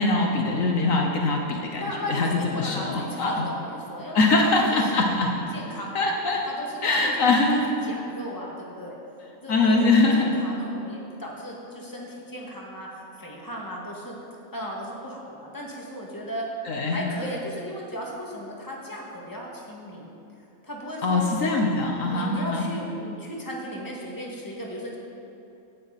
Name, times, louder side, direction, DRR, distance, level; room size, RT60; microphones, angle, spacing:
voice 1, 0.0-1.8 2.1-3.4 4.1-5.3 5.9-6.4 6.8-7.6 9.5-10.4 16.7-17.1 21.0-22.6, left 3 dB, 65° left, 1 dB, 1.4 m, -22 dB
voice 2, 1.7-5.0 5.5-6.1 6.5-7.3 7.8-9.0 9.4-9.9 10.2-14.2 14.5-20.1 20.6-21.3 21.6-21.7 22.0-25.0, equal, 15° left, -3 dB, 2.0 m, -36 dB
16.0 x 10.5 x 4.2 m, 2.8 s
omnidirectional pair, 1.5 m